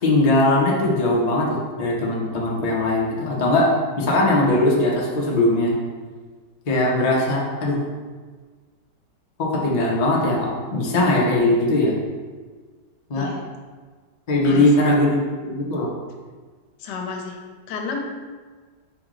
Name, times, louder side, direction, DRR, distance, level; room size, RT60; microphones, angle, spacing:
voice 1, 0.0-3.7 4.0-5.7 6.7-7.8 9.4-11.9 13.1-13.3 14.3-15.9, left 2 dB, 55° left, -3 dB, 0.4 m, -20 dB
voice 2, 14.4-14.9 16.8-17.4 17.7-18.0, left 4 dB, 75° left, 2 dB, 1.2 m, -31 dB
4.4 x 3.0 x 3.7 m, 1.4 s
omnidirectional pair, 1.8 m